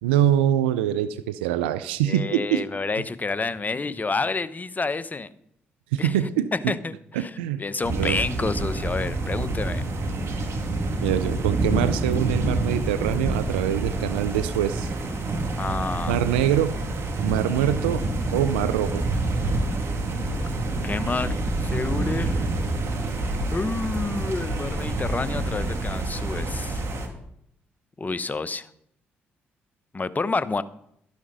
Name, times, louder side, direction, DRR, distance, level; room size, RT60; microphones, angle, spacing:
voice 1, 0.0-2.6 5.9-6.7 7.2-7.6 8.0-8.2 11.0-14.9 16.1-16.8 17.2-18.0 18.3-19.0, right 11 dB, 85° right, 13 dB, 0.5 m, -24 dB
voice 2, 2.0-5.3 6.0-6.2 6.5-9.8 15.6-16.2 20.8-22.5 23.5-26.8 28.0-28.7 29.9-30.6, left 3 dB, 30° left, 14 dB, 1.0 m, -29 dB
sound 1, 7.8-27.1, right 2 dB, 55° right, 2.4 m, -27 dB
12.5 x 10.5 x 4.1 m, 0.72 s
hypercardioid pair, 45°, 6 cm